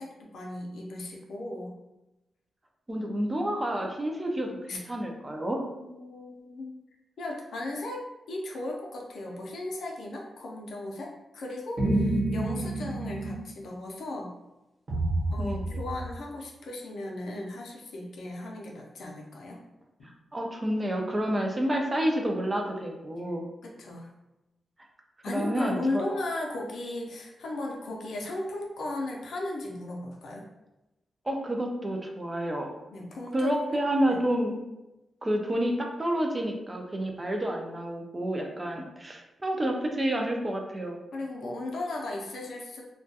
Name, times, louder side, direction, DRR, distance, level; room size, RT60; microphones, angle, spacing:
voice 1, 0.0-1.7 4.7-4.8 5.8-6.8 7.2-8.0 8.3-14.3 15.3-19.6 20.0-20.1 23.6-24.1 25.2-30.4 32.9-34.2 38.6-38.7 41.1-42.8, left 2 dB, 80° left, 0 dB, 0.5 m, -36 dB
voice 2, 2.9-5.7 15.4-15.7 20.3-23.4 25.3-26.0 31.2-32.8 33.3-34.6 35.2-41.0, right 1 dB, 20° right, 2 dB, 0.3 m, -29 dB
sound 1, 11.8-13.4 14.9-16.1, right 1 dB, 45° right, 1.0 m, -28 dB
2.2 x 2.2 x 2.7 m, 0.97 s
wide cardioid pair, 145°, 0 cm